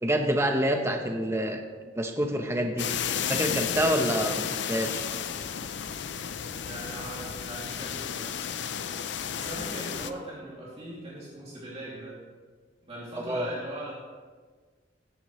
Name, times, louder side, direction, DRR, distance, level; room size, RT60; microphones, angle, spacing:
voice 1, 0.0-1.6 1.9-2.9 3.3-5.0 13.2-13.5, right 1 dB, 15° right, 4 dB, 0.8 m, -27 dB
sound 1, 2.8-10.1, left 8 dB, 75° left, 0.6 m, -32 dB
voice 2, 6.3-8.4 9.3-12.1 12.8-13.9, right 1 dB, 35° right, -6 dB, 2.5 m, -40 dB
17.0 x 11.0 x 3.1 m, 1.5 s
head